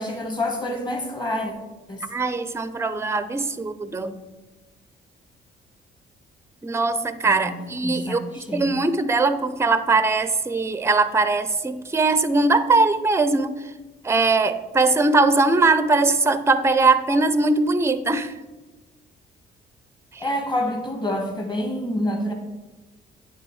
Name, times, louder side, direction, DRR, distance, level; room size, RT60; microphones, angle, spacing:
voice 1, 0.0-1.5 1.9-2.0 7.2-8.7 20.2-22.3, left 1 dB, 20° left, 3 dB, 1.7 m, -27 dB
voice 2, 2.1-4.1 6.6-13.7 14.0-18.3 20.1-20.3, right 3 dB, 15° right, 12 dB, 0.5 m, -21 dB
9.7 x 3.9 x 4.8 m, 1.2 s
cardioid pair, 90°, 20 cm